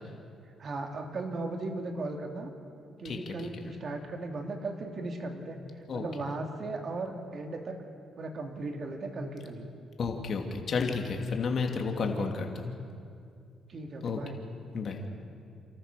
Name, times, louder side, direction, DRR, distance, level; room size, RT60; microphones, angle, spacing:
voice 1, 0.6-2.5 3.0-5.6 5.9-7.8 8.2-9.7 12.0-12.3 13.7-14.4, right 2 dB, 50° right, 4 dB, 2.8 m, -37 dB
voice 2, 3.0-3.5 5.9-6.0 10.0-12.7 14.0-14.2 14.7-15.0, left 4 dB, 55° left, 3 dB, 2.6 m, -31 dB
29.5 x 13.5 x 6.8 m, 2.4 s
cardioid pair, 90°, 0 cm